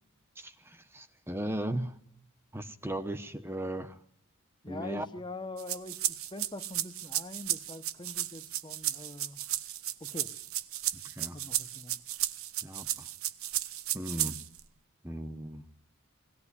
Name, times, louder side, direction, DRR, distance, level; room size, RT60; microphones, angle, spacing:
voice 1, 0.4-2.0 2.5-4.0 4.7-5.1 10.9-11.4 12.6-13.1 13.9-14.4 15.0-15.6, right 1 dB, 10° right, 9 dB, 1.0 m, -37 dB
voice 2, 4.6-6.0 6.3-9.4 10.0-10.3 11.3-12.0, left 2 dB, 20° left, 9 dB, 1.1 m, -43 dB
sound 1, 5.6-14.6, right 13 dB, 75° right, 1.0 m, -34 dB
22.0 x 18.0 x 10.0 m, 0.71 s
head